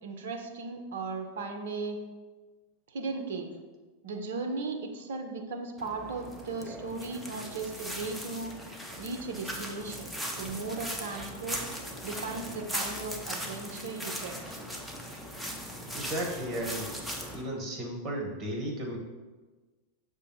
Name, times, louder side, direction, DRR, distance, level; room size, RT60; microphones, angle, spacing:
voice 1, 0.0-2.0 2.9-3.5 4.0-8.5 9.0-10.1 10.3-11.6 12.0-14.6, right 3 dB, 60° right, 4 dB, 0.5 m, -37 dB
sound 1, 5.8-17.4, equal, ahead, 0.5 m, -39 dB
voice 2, 15.9-16.9 17.3-19.0, right 1 dB, 30° right, 1 dB, 0.8 m, -34 dB
6.3 x 2.5 x 2.6 m, 1.3 s
figure-of-eight pair, 90°, 0 cm